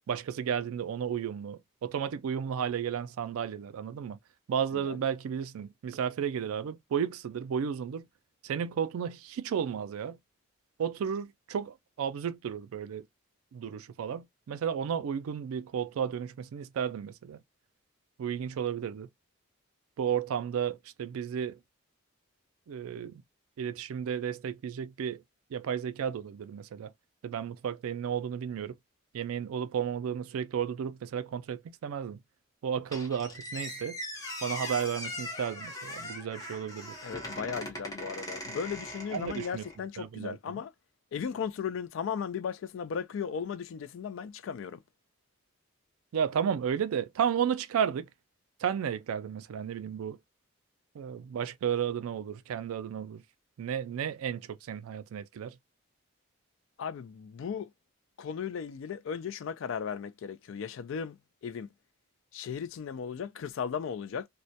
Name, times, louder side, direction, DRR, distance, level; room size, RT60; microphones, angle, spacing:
voice 1, 0.1-4.2 4.5-8.1 8.4-10.2 10.8-13.1 13.5-17.4 18.2-19.1 20.0-21.6 22.7-23.2 23.6-25.2 25.5-26.9 27.2-28.8 29.1-32.2 32.6-34.0 34.4-36.9 39.1-39.6 40.0-40.6 46.1-48.1 48.6-50.2 50.9-53.2 53.6-55.6, right 8 dB, 80° right, 0.3 m, -33 dB
Squeak, 32.9-39.8, left 1 dB, 15° left, 0.7 m, -40 dB
voice 2, 37.0-40.7 41.1-44.8 56.8-57.7 58.2-61.7 62.3-64.3, left 7 dB, 65° left, 0.3 m, -36 dB
2.2 x 2.1 x 2.6 m
head